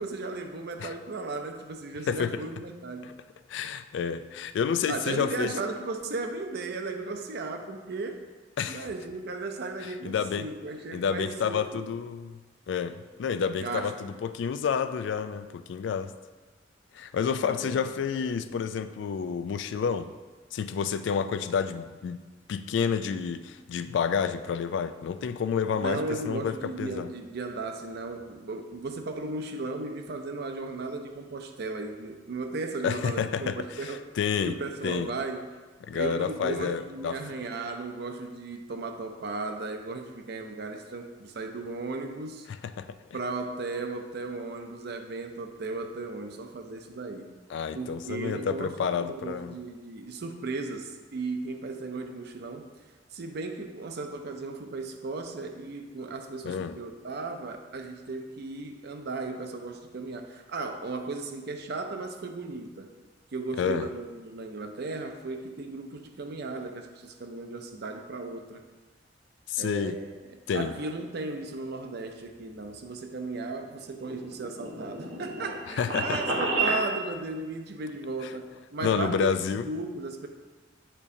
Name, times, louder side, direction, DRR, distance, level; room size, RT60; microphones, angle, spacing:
voice 1, 0.0-3.1 4.9-8.2 8.7-11.9 13.6-14.1 17.4-17.8 25.7-34.0 34.4-35.5 35.9-42.5 43.1-47.3 47.7-52.7 53.1-62.9 63.3-68.6 69.6-70.1 70.5-80.3, right 3 dB, 60° right, 6 dB, 0.5 m, -36 dB
voice 2, 2.1-2.4 3.0-3.1 3.5-5.5 8.6-8.9 9.8-10.5 10.9-12.4 12.7-16.1 16.9-20.1 20.5-22.2 22.5-27.1 32.8-35.1 35.8-37.2 42.5-43.0 47.5-49.6 56.4-56.8 63.6-63.9 69.5-70.0 70.5-70.7 75.7-76.2 78.2-78.3 78.8-79.7, left 6 dB, 70° left, 11 dB, 0.3 m, -29 dB
sound 1, 73.8-76.8, right 2 dB, 85° right, 1.2 m, -30 dB
8.3 x 4.4 x 2.7 m, 1.3 s
head